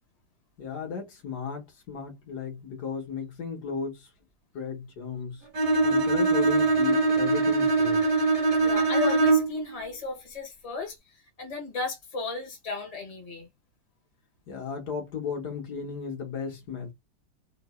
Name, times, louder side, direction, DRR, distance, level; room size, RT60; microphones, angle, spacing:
voice 1, 0.6-4.1 4.5-5.5 5.8-8.0 14.5-16.9, left 6 dB, 65° left, 1.8 m, -35 dB
Bowed string instrument, 5.5-9.6, right 3 dB, 45° right, 0.5 m, -22 dB
voice 2, 8.6-13.5, left 4 dB, 25° left, 1.2 m, -35 dB
3.7 x 2.9 x 2.2 m
omnidirectional pair, 1.9 m